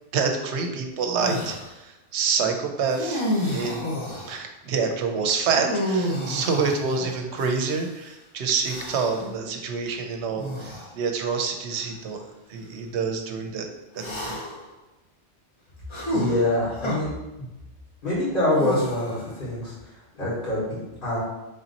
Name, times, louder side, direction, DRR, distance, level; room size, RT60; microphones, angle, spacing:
voice 1, 0.1-1.6 2.1-3.2 3.5-3.9 4.2-12.2 12.5-13.7 13.9-14.4, right 5 dB, 75° right, 4 dB, 0.9 m, -27 dB
sound 1, 1.2-1.7 2.9-4.4 5.6-7.9 8.6-9.3 10.4-10.9 11.7-11.9 14.0-14.7 15.9-17.0 18.5-19.4, equal, 30° left, 0.7 m, -30 dB
voice 2, 16.1-17.1 17.4-17.5 18.0-21.2, left 1 dB, 50° left, -11 dB, 1.5 m, -25 dB
3.5 x 2.8 x 3.9 m, 0.97 s
omnidirectional pair, 1.2 m